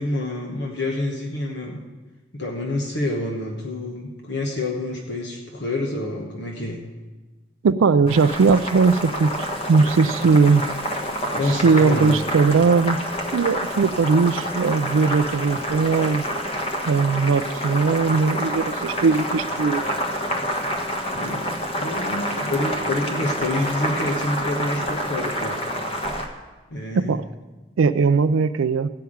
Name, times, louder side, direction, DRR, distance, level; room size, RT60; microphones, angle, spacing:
voice 1, 0.0-1.8 2.3-6.9 11.3-12.2 21.1-25.6 26.7-27.2, left 1 dB, 60° left, 0 dB, 1.3 m, -27 dB
voice 2, 7.6-10.7 11.5-13.0 13.3-16.3 16.9-19.9 26.9-27.2 27.8-28.9, right 4 dB, 80° right, 12 dB, 0.4 m, -19 dB
Boiling, 8.1-26.3, equal, 30° left, 1.3 m, -28 dB
15.0 x 5.8 x 8.6 m, 1.2 s
head